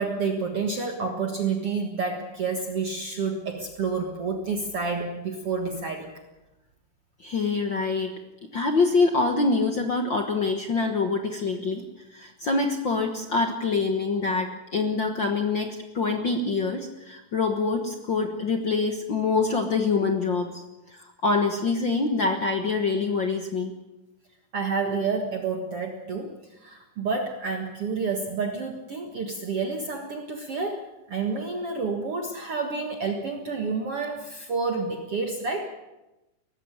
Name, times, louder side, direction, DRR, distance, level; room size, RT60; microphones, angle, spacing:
voice 1, 0.0-6.1 24.5-35.7, right 4 dB, 50° right, 4 dB, 2.0 m, -29 dB
voice 2, 7.2-8.2 8.5-11.8 12.1-23.8, left 4 dB, 65° left, 5 dB, 1.1 m, -25 dB
19.0 x 15.0 x 9.7 m, 1.0 s
omnidirectional pair, 4.3 m